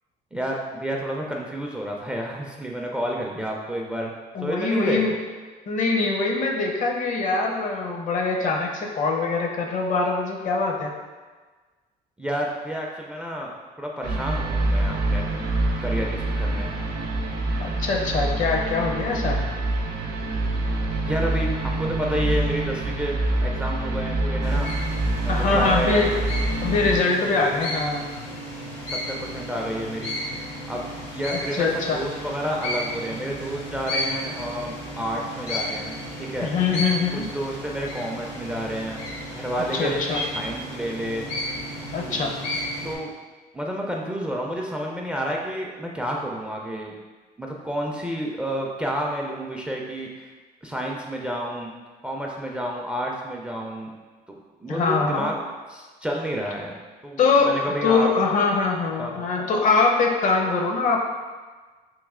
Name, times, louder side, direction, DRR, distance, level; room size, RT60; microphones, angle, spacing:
voice 1, 0.3-4.1 4.4-5.0 12.2-15.5 15.8-16.7 21.0-24.7 25.2-26.1 29.1-36.5 37.1-39.0 39.3-41.2 42.0-42.3 42.8-43.1 43.5-46.9 47.4-50.3 50.6-51.7 52.0-53.9 54.3-55.3 55.7-56.8 57.0-58.1 59.0-59.3, equal, 5° right, -1 dB, 0.4 m, -30 dB
voice 2, 4.3-5.1 5.7-10.9 17.6-19.4 25.3-26.2 26.6-28.0 31.3-32.0 36.4-37.3 39.7-40.2 41.9-42.3 54.7-55.3 57.2-61.0, left 4 dB, 50° left, 1 dB, 0.6 m, -23 dB
sound 1, 14.0-27.0, right 2 dB, 75° right, 0.6 m, -26 dB
sound 2, 24.4-42.9, equal, 75° left, 0.9 m, -33 dB
3.1 x 2.9 x 3.6 m, 1.3 s
cardioid pair, 110°, 17 cm